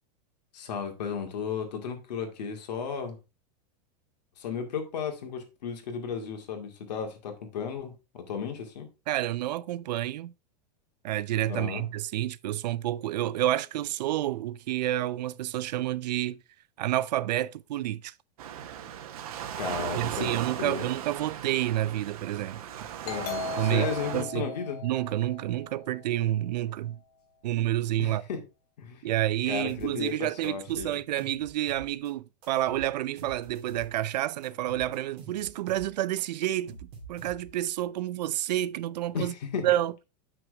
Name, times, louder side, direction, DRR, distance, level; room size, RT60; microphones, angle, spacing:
voice 1, 0.5-3.2 4.4-8.9 11.5-11.9 19.5-20.9 23.0-24.8 28.0-28.4 28.8-29.0 29.5-31.0 39.1-39.7, left 6 dB, 85° left, 2.3 m, -34 dB
voice 2, 9.1-10.3 11.0-16.4 16.8-18.1 19.9-22.6 23.6-24.5 24.8-27.0 27.4-28.2 29.0-36.8 37.1-39.3 39.6-40.0, right 13 dB, 85° right, 0.5 m, -29 dB
Waves surf, 18.4-24.2, right 10 dB, 60° right, 1.2 m, -37 dB
Doorbell, 23.0-26.4, left 4 dB, 70° left, 2.6 m, -39 dB
sound 1, 29.7-30.1 30.4-32.1 32.4-34.1 34.4-35.9 36.2-37.7, right 4 dB, 25° right, 2.5 m, -46 dB
7.8 x 6.1 x 3.4 m
supercardioid pair, 180°, 21 cm